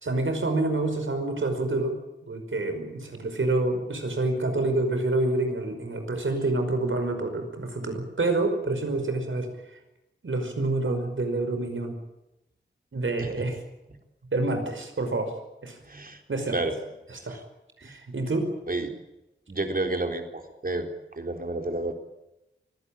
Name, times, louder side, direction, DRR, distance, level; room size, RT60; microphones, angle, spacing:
voice 1, 0.0-2.0 2.3-9.8 10.2-12.0 12.9-13.6 14.3-15.3 15.6-15.8 16.3-16.6 17.1-17.4 17.8-18.5, right 2 dB, 90° right, 6 dB, 5.3 m, -27 dB
voice 2, 15.9-16.2 16.5-16.7 17.8-18.0 18.7-18.9 19.5-20.9 21.2-21.9, right 2 dB, 45° right, 5 dB, 3.8 m, -30 dB
24.0 x 17.0 x 8.9 m, 0.93 s
wide cardioid pair, 75°, 20 cm